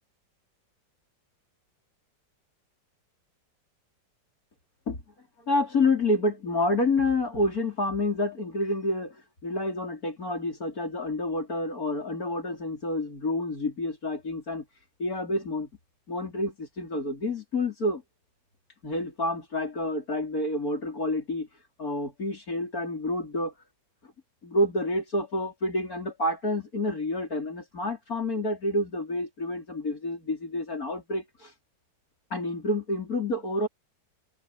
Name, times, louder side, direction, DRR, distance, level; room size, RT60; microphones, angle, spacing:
voice 1, 5.5-9.2 9.4-14.6 15.0-15.7 16.1-18.0 18.8-21.5 21.8-23.5 24.4-31.5 32.3-33.7, left 2 dB, 50° left, 4.9 m, -28 dB
omnidirectional pair, 2.0 m